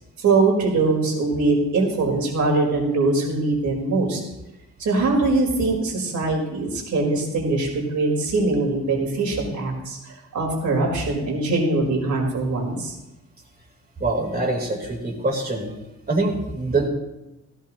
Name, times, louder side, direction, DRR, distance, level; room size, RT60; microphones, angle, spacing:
voice 1, 0.2-4.2 4.8-13.0, right 3 dB, 70° right, 0 dB, 4.4 m, -22 dB
voice 2, 14.0-15.8 16.1-16.9, right 2 dB, 30° right, 0 dB, 3.8 m, -24 dB
17.0 x 17.0 x 3.0 m, 0.97 s
cardioid pair, 115°, 30 cm